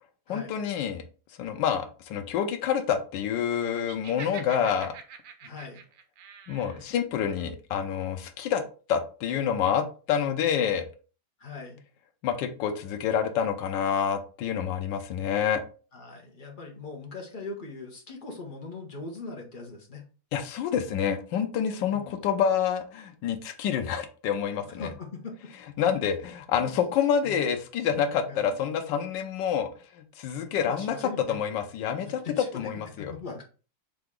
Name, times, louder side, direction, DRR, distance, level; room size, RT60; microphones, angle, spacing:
voice 1, 0.3-1.0 1.4-4.9 6.5-8.6 8.9-10.8 12.2-15.6 20.3-24.9 25.8-29.7 30.2-32.2 32.5-33.1, left 8 dB, 80° left, 5 dB, 1.3 m, -27 dB
Laughter, 3.8-6.8, right 7 dB, 85° right, 1.4 m, -45 dB
voice 2, 5.4-5.8 11.4-11.8 15.9-20.0 21.8-22.2 24.8-25.5 26.0-26.1 26.5-27.5 28.3-28.5 30.3-31.4 32.0-32.7 33.0-33.4, left 3 dB, 40° left, 0 dB, 0.8 m, -41 dB
3.9 x 3.4 x 3.7 m, 0.37 s
omnidirectional pair, 2.0 m